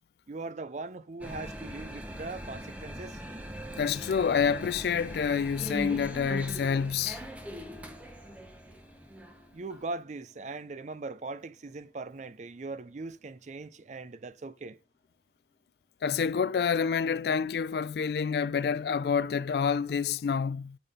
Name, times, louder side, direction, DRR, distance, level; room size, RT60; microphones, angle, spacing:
voice 1, 0.3-3.2 9.5-14.8, right 3 dB, 40° right, 0.5 m, -40 dB
sound 1, 1.2-9.8, equal, 10° right, 0.9 m, -41 dB
sound 2, 2.5-16.4, equal, 25° left, 1.5 m, -59 dB
voice 2, 3.8-7.2 16.0-20.8, left 6 dB, 60° left, 0.3 m, -28 dB
10.5 x 4.3 x 5.0 m
head